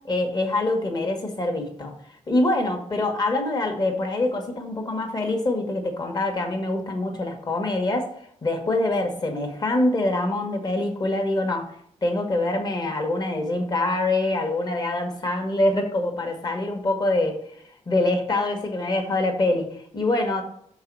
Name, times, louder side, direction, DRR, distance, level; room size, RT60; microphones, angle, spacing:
voice 1, 0.1-1.9 2.3-8.1 8.4-11.7 12.0-17.4 17.9-20.4, left 2 dB, 35° left, 4 dB, 1.4 m, -24 dB
6.8 x 4.8 x 6.2 m, 0.66 s
wide cardioid pair, 175°, 13 cm